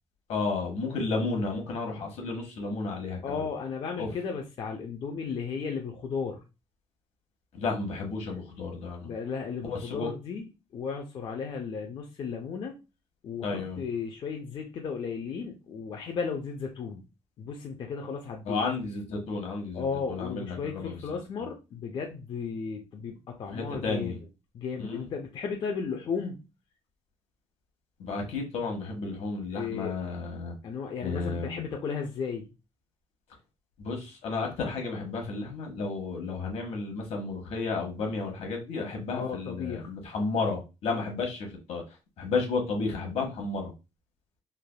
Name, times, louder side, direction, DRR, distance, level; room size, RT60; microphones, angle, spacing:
voice 1, 0.3-3.4 4.0-4.1 7.5-9.1 9.6-10.1 13.4-13.8 18.4-21.0 23.5-24.2 24.8-25.1 28.0-30.5 31.0-31.7 33.8-41.8 42.2-43.7, left 3 dB, 75° left, 2 dB, 1.0 m, -32 dB
voice 2, 3.2-6.4 9.0-12.8 13.2-17.0 17.4-18.6 19.7-24.2 24.5-26.4 29.5-29.9 30.6-32.5 39.1-39.9, left 5 dB, 45° left, 2 dB, 0.4 m, -35 dB
3.3 x 2.3 x 2.2 m, 0.28 s
cardioid pair, 175°, 11 cm